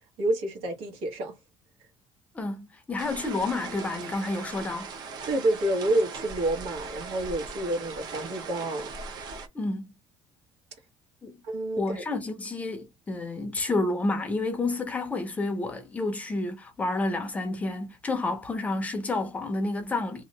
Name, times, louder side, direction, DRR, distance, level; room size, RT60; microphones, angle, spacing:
voice 1, 0.2-1.4 5.2-8.9 11.4-12.0, right 1 dB, 85° right, 1.4 m, -28 dB
voice 2, 2.3-4.9 9.5-9.9 11.2-11.4 11.8-20.2, left 2 dB, 15° left, 0.6 m, -30 dB
sound 1, 3.0-9.5, right 4 dB, 50° right, 0.7 m, -39 dB
2.8 x 2.5 x 3.1 m
cardioid pair, 175°, 9 cm